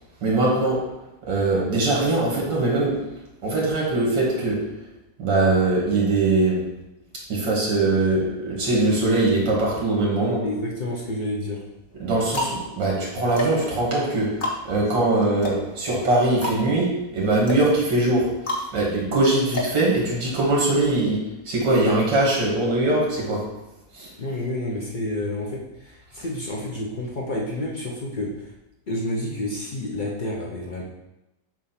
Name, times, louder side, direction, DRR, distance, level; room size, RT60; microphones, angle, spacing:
voice 1, 0.2-0.9 1.3-3.0 3.4-4.7 5.2-6.6 7.3-10.5 12.0-14.4 14.7-18.4 18.7-23.4 23.9-24.1, right 2 dB, 75° right, -4 dB, 2.4 m, -21 dB
voice 2, 10.4-11.6 24.2-28.5 28.9-30.8, left 1 dB, 80° left, -3 dB, 0.4 m, -29 dB
sound 1, 10.4-11.1 11.8-20.5, equal, 35° left, 0.9 m, -32 dB
7.3 x 2.5 x 5.6 m, 0.95 s
omnidirectional pair, 1.9 m